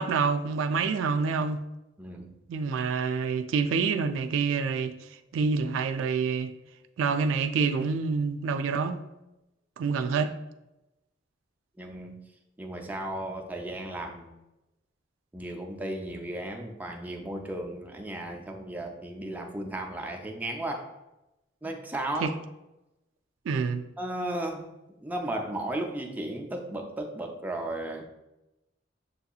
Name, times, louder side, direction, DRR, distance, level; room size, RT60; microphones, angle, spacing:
voice 1, 0.0-1.6 2.5-4.9 5.3-6.5 7.0-9.0 9.8-10.3 22.2-22.3 23.5-23.8, right 5 dB, 85° right, 0.3 m, -27 dB
voice 2, 2.0-2.3 11.8-12.2 12.6-14.3 15.3-20.9 21.6-22.3 24.0-24.7 25.0-28.1, right 1 dB, 10° right, 0.4 m, -35 dB
6.7 x 2.7 x 2.3 m
head